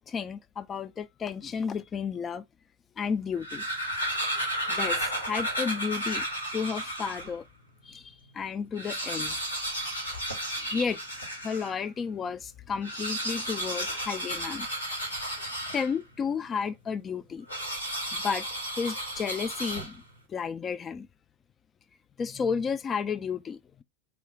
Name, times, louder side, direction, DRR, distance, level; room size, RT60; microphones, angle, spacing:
voice 1, 0.0-2.4 3.0-3.6 4.7-6.2 6.5-7.5 7.9-9.4 10.7-11.0 11.4-14.7 15.7-17.5 18.1-18.5 18.8-20.0 20.3-21.1 22.2-23.8, left 6 dB, 25° left, 0.3 m, -32 dB
sound 1, 3.2-7.4 7.9-8.0 8.2-8.3 8.6-11.8 12.7-16.2 17.5-20.2, right 1 dB, 90° left, 1.1 m, -33 dB
3.4 x 2.1 x 3.7 m
figure-of-eight pair, 85°, 0 cm